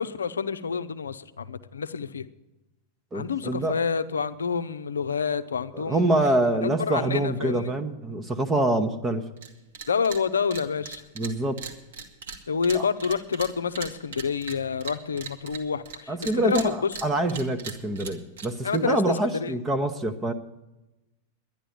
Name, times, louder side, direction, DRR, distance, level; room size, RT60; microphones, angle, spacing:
voice 1, 0.0-2.3 3.1-6.1 6.6-7.7 9.9-11.0 12.5-16.9 18.6-19.0 19.2-19.5, left 6 dB, 70° left, 12 dB, 0.6 m, -28 dB
voice 2, 3.1-3.8 5.7-9.2 11.2-11.6 12.7-12.9 16.1-20.3, right 1 dB, 15° right, 5 dB, 0.9 m, -25 dB
sound 1, 9.4-9.5 9.7-10.2 10.5-16.0 16.2-18.8, right 6 dB, 60° right, 1.7 m, -38 dB
11.5 x 10.5 x 8.5 m, 1.0 s
figure-of-eight pair, 90°, 0 cm